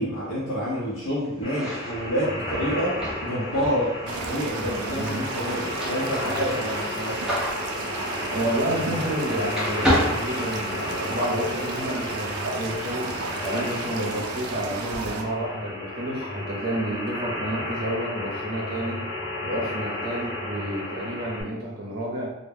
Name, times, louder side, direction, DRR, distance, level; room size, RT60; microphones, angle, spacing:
voice 1, 0.0-7.2, equal, 60° left, -8 dB, 0.7 m, -28 dB
sound 1, 1.4-21.4, left 1 dB, 25° left, 0.7 m, -33 dB
sound 2, 1.4-9.2 9.5-11.1, equal, 5° right, 0.5 m, -30 dB
sound 3, 4.1-15.2, right 4 dB, 90° right, 0.4 m, -34 dB
voice 2, 4.9-5.3 8.3-13.1 13.4-19.0 19.4-22.3, right 1 dB, 45° right, -4 dB, 0.7 m, -30 dB
2.1 x 2.1 x 3.3 m, 0.90 s
head